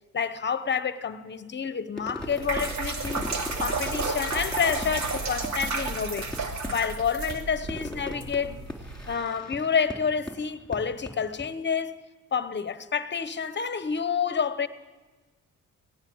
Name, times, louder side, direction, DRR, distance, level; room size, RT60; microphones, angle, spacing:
voice 1, 0.1-3.2 3.6-8.7 9.1-12.0 12.3-14.7, left 6 dB, 35° left, 1.1 m, -29 dB
Fireworks, 2.0-11.5, left 1 dB, 5° left, 3.4 m, -40 dB
sound 1, 2.2-9.1, right 3 dB, 65° right, 2.7 m, -32 dB
18.5 x 18.0 x 7.9 m
cardioid pair, 90°, 30 cm